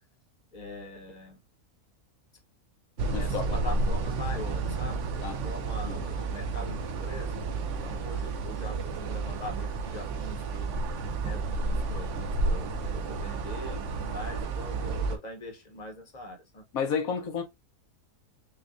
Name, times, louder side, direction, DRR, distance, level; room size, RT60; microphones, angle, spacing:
voice 1, 0.5-1.4 3.0-7.5 7.8-10.7 11.2-16.6, left 1 dB, 35° left, 0.9 m, -42 dB
sound 1, 3.0-15.2, right 3 dB, 65° right, 0.9 m, -31 dB
voice 2, 3.1-3.5 5.2-5.4 5.9-6.0 16.7-17.4, left 6 dB, 80° left, 1.3 m, -31 dB
5.2 x 2.4 x 2.5 m
omnidirectional pair, 1.5 m